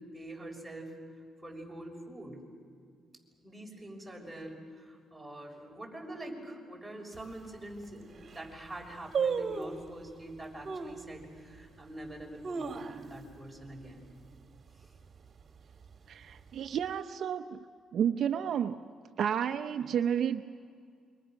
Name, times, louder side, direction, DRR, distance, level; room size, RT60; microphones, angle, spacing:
voice 1, 0.1-1.0 1.4-2.4 3.4-14.1 14.8-14.9, right 1 dB, 5° right, -1 dB, 6.6 m, -45 dB
sound 1, 7.1-7.2 7.8-7.9 8.1-8.5 9.1-9.9 10.6-11.0 11.6-11.7 12.2-13.3 13.6-13.7 14.0-14.4 14.8-15.2 15.8-16.6 16.8-16.9, right 5 dB, 45° right, 1.8 m, -34 dB
voice 2, 16.1-17.6 17.9-18.8 19.2-20.4, right 8 dB, 65° right, 8 dB, 0.7 m, -31 dB
29.0 x 24.5 x 6.4 m, 2.2 s
cardioid pair, 90°, 0 cm